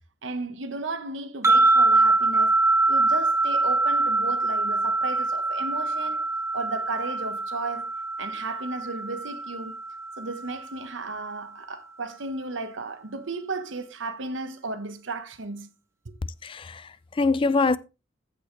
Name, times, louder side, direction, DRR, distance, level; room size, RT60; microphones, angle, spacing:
voice 1, 0.2-2.6 2.9-6.3 6.5-7.9 8.2-9.7 10.2-15.7 16.0-16.2, right 3 dB, 75° right, 1.1 m, -34 dB
sound 1, 1.4-10.7, right 2 dB, 15° right, 0.6 m, -24 dB
voice 2, 16.4-17.8, left 3 dB, 25° left, 0.3 m, -24 dB
15.0 x 5.6 x 3.1 m
head